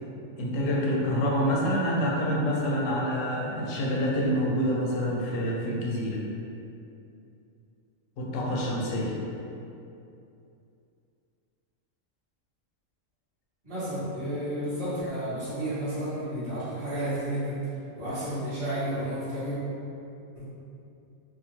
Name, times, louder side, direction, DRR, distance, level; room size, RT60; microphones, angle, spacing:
voice 1, 0.4-6.2 8.2-9.1 18.1-18.2, equal, 80° left, -3 dB, 0.9 m, -27 dB
voice 2, 13.6-17.6 17.9-19.6 20.3-20.5, right 1 dB, 30° right, -14 dB, 0.8 m, -31 dB
2.8 x 2.3 x 2.9 m, 2.7 s
omnidirectional pair, 1.3 m